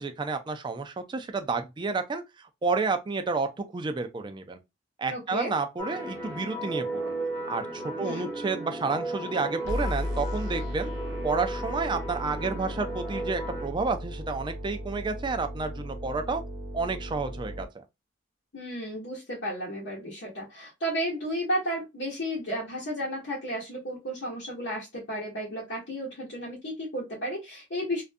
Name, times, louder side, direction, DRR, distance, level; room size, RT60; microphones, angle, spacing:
voice 1, 0.0-4.6 5.0-7.1 7.5-10.9 11.2-16.4 16.7-17.8, right 4 dB, 25° right, 0.3 m, -30 dB
voice 2, 5.1-5.5 8.0-8.3 18.5-28.0, equal, 70° left, 1.0 m, -33 dB
sound 1, 5.8-13.7, right 1 dB, 10° left, 0.9 m, -35 dB
sound 2, 9.6-17.6, equal, 65° right, 0.7 m, -36 dB
2.5 x 2.2 x 2.5 m
head